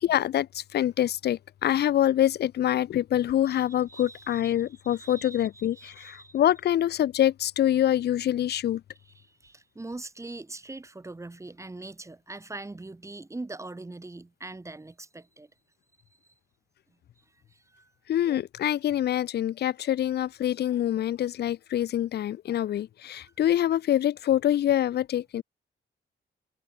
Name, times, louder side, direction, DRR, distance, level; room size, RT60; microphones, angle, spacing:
voice 1, 0.0-8.8 18.1-25.4, left 11 dB, 60° left, 0.4 m, -25 dB
voice 2, 3.9-4.5 4.8-6.4 9.1-15.5 17.5-17.9, right 2 dB, 15° right, 2.2 m, -42 dB
wide cardioid pair, 150°, 20 cm